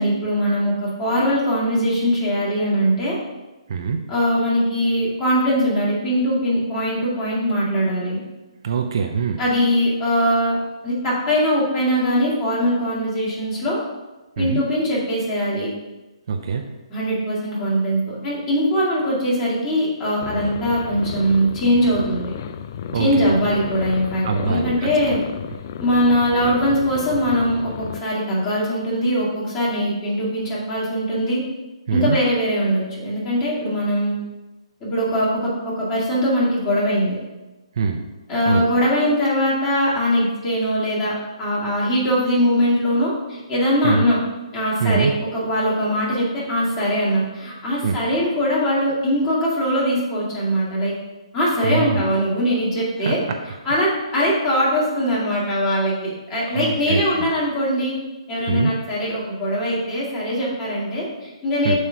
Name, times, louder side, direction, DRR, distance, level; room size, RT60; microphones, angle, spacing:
voice 1, 0.0-3.1 4.1-8.2 9.4-10.6 10.8-13.8 14.4-15.7 16.9-22.3 22.9-25.2 25.8-31.4 31.9-34.2 34.8-35.5 35.8-37.2 38.3-44.2 44.5-50.9 51.3-53.2 53.6-57.9 58.3-61.8, equal, 20° left, -7 dB, 2.3 m, -21 dB
voice 2, 3.7-4.0 8.6-9.4 14.4-14.6 16.3-16.7 22.9-23.4 24.2-24.9 31.9-32.2 37.8-38.0 38.5-38.7 43.8-44.1 44.8-45.1 47.8-48.0 51.6-52.0 53.0-53.2 56.5-57.2 58.5-58.7 61.6-61.8, right 5 dB, 50° right, 4 dB, 0.6 m, -23 dB
sound 1, 20.2-28.0, left 8 dB, 35° left, 0.3 m, -33 dB
7.4 x 3.2 x 5.7 m, 1.1 s
hypercardioid pair, 160°, 3 cm